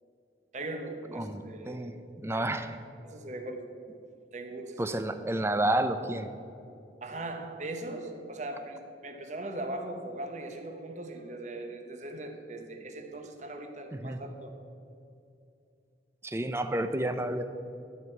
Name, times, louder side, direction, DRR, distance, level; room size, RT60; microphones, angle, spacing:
voice 1, 0.5-1.9 2.3-2.5 3.0-3.7 4.3-5.0 7.0-14.6, right 2 dB, 45° right, 5 dB, 1.1 m, -39 dB
voice 2, 1.1-2.8 4.8-6.3 13.9-14.2 16.2-17.4, right 1 dB, 15° right, 9 dB, 0.5 m, -30 dB
12.5 x 5.6 x 8.0 m, 2.5 s
head